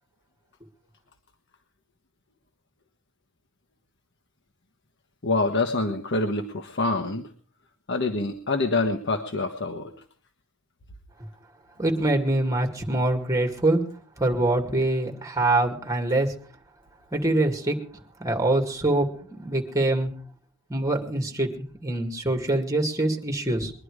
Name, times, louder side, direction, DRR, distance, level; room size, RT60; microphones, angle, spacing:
voice 1, 5.2-7.3 7.9-9.9, left 2 dB, 55° left, 5 dB, 1.2 m, -26 dB
voice 2, 11.8-13.8 14.2-16.3 17.1-17.8 18.2-19.1 19.4-20.1 20.7-23.7, right 2 dB, 15° right, 4 dB, 2.4 m, -24 dB
22.0 x 11.0 x 4.9 m, 0.43 s
head